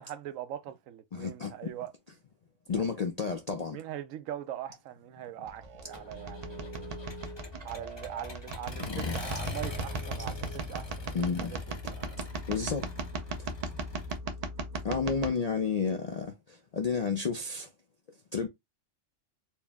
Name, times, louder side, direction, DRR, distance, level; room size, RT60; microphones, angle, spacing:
voice 1, 0.0-1.9 2.8-3.0 3.7-7.0 7.6-11.6 11.9-12.3, right 11 dB, 90° right, 1.0 m, -42 dB
voice 2, 1.1-1.7 2.7-3.8 8.9-9.2 11.1-11.6 12.5-12.9 14.8-17.7 18.3-18.5, left 5 dB, 65° left, 0.4 m, -31 dB
sound 1, 5.5-15.3, right 2 dB, 45° right, 0.5 m, -38 dB
Accelerating revving vroom, 5.9-14.2, left 2 dB, 25° left, 0.6 m, -43 dB
4.5 x 2.0 x 3.4 m
omnidirectional pair, 1.3 m